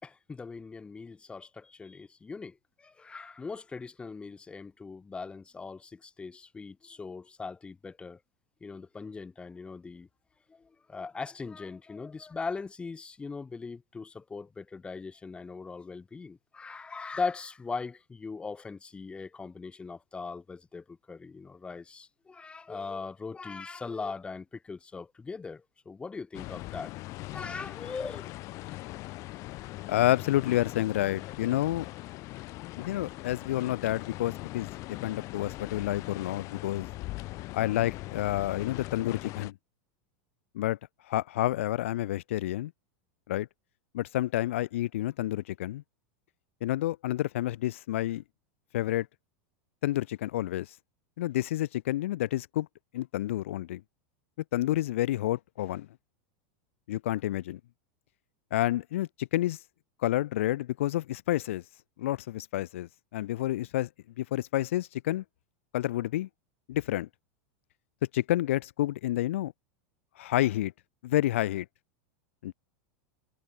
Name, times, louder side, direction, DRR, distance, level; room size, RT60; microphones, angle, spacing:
voice 1, 0.0-8.2 8.6-10.1 10.5-26.9 27.3-28.3, left 4 dB, 15° left, 6.5 m, -40 dB
sound 1, 26.3-39.5, left 20 dB, 50° left, 2.2 m, -40 dB
voice 2, 29.9-31.9 32.8-36.9 37.5-39.5 40.5-40.8 41.1-42.7 43.3-43.5 43.9-45.8 46.6-48.2 48.7-49.1 49.8-50.7 51.2-52.7 52.9-53.8 54.5-55.9 56.9-57.6 58.5-59.6 60.0-61.6 62.0-63.9 64.2-65.2 65.7-66.3 66.7-67.1 68.1-69.5 70.2-70.7 71.0-71.7 72.4-72.5, left 14 dB, 75° left, 2.9 m, -29 dB
hypercardioid pair, 115°, 7 cm